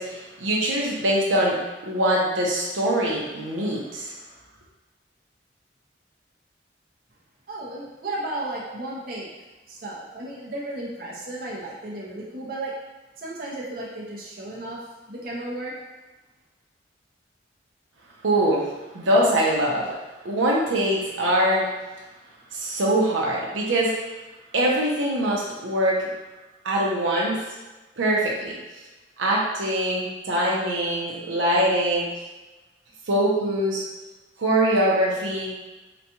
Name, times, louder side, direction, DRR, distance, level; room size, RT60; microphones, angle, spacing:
voice 1, 0.0-4.1 18.2-18.7 18.9-20.0 20.2-21.7 22.5-23.9 24.5-26.0 26.6-27.4 28.0-28.6 29.2-32.1 33.1-33.8 34.4-35.5, right 1 dB, 85° right, -4 dB, 0.7 m, -23 dB
voice 2, 7.5-9.3 9.7-12.7 13.2-15.8, right 1 dB, 50° right, -5 dB, 0.7 m, -34 dB
4.0 x 2.3 x 2.9 m, 1.1 s
head